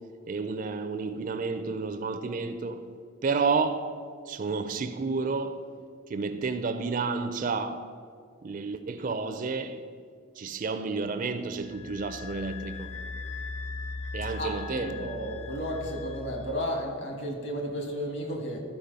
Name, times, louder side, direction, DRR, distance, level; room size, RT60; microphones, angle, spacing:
voice 1, 0.3-2.8 3.2-3.9 4.3-5.6 6.1-7.8 8.4-9.8 10.4-12.9 14.1-15.1, right 4 dB, 40° right, 0.4 m, -30 dB
sound 1, 11.6-16.5, left 3 dB, 30° left, 0.6 m, -39 dB
voice 2, 14.4-18.6, equal, 60° left, 1.6 m, -33 dB
12.0 x 4.6 x 5.3 m
head